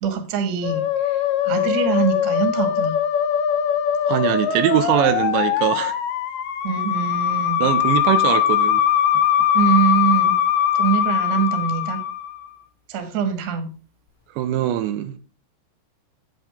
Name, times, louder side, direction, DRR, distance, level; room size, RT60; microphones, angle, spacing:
voice 1, 0.0-3.0 6.6-7.6 9.5-10.3 10.8-12.0 12.9-13.7, right 7 dB, 50° right, 2.2 m, -23 dB
Musical instrument, 0.6-12.4, left 10 dB, 75° left, 2.6 m, -21 dB
voice 2, 4.1-6.0 7.6-8.8 14.4-15.2, right 12 dB, 90° right, 3.1 m, -21 dB
8.9 x 8.2 x 3.5 m
omnidirectional pair, 5.2 m